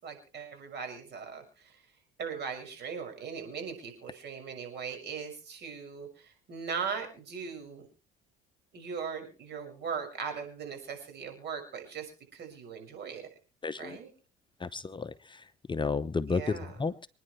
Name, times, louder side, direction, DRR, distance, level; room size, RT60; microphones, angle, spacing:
voice 1, 0.0-1.8 2.2-7.9 8.7-13.2 13.8-14.1 16.3-16.8, right 6 dB, 55° right, 5 dB, 6.4 m, -39 dB
voice 2, 13.6-14.0 14.6-15.1 15.7-16.4 16.8-17.1, left 4 dB, 20° left, 11 dB, 0.8 m, -31 dB
27.0 x 10.0 x 3.2 m, 0.36 s
supercardioid pair, 75°, 21 cm